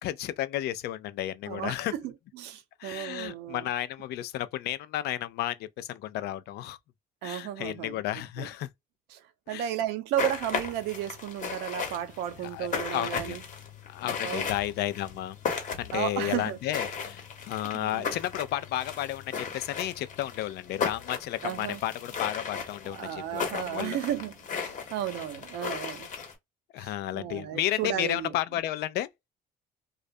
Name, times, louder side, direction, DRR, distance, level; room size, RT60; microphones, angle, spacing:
voice 1, 0.0-1.9 2.8-6.8 7.2-8.7 9.5-9.7 12.4-13.4 13.9-15.4 15.8-24.0 26.7-29.1, left 13 dB, 70° left, 0.4 m, -32 dB
voice 2, 1.5-3.7 7.2-8.0 8.4-8.5 9.1-13.4 14.2-14.5 15.9-16.6 17.7-18.1 21.4-21.8 22.8-26.1 26.8-28.3, right 11 dB, 90° right, 0.6 m, -34 dB
sound 1, 10.2-26.3, left 6 dB, 50° left, 1.0 m, -36 dB
2.4 x 2.1 x 2.5 m
cardioid pair, 110°, 17 cm